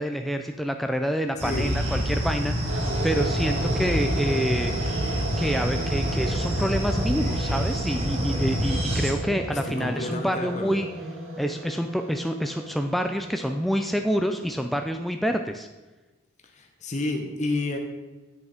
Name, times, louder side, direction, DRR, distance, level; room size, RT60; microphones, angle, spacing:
voice 1, 0.0-4.7 5.4-10.9 11.4-15.7, equal, ahead, 5 dB, 0.3 m, -27 dB
sound 1, 1.4-9.1, equal, 30° right, 1.7 m, -27 dB
sound 2, 2.7-14.9, right 1 dB, 70° right, 1.5 m, -35 dB
voice 2, 9.5-10.8 16.5-17.8, left 2 dB, 35° left, 3 dB, 0.8 m, -30 dB
8.8 x 6.7 x 5.0 m, 1.2 s
head